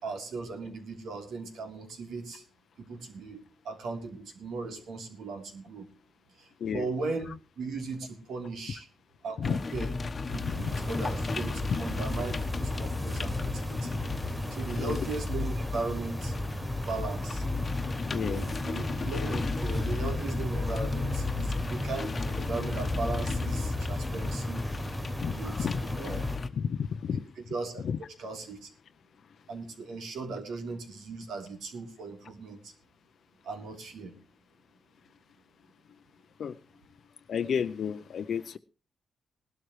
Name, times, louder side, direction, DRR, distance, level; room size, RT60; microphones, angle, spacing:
voice 1, 0.0-2.4 2.8-5.9 6.4-7.3 7.6-8.9 9.2-9.9 10.3-14.0 14.3-16.4 16.7-17.4 18.2-24.6 25.3-25.7 25.9-26.2 27.1-27.9 28.2-28.7 29.5-32.7 33.4-34.1, right 3 dB, 90° right, 3.3 m, -38 dB
sound 1, 9.4-26.5, left 3 dB, 35° left, 1.1 m, -33 dB
sound 2, 10.3-26.4, right 1 dB, 10° right, 2.9 m, -37 dB
voice 2, 18.1-18.4 25.2-26.2 26.6-27.2 27.8-28.0 36.4-36.6 37.3-38.6, left 7 dB, 65° left, 0.6 m, -32 dB
19.0 x 12.5 x 3.2 m
cardioid pair, 120°, 0 cm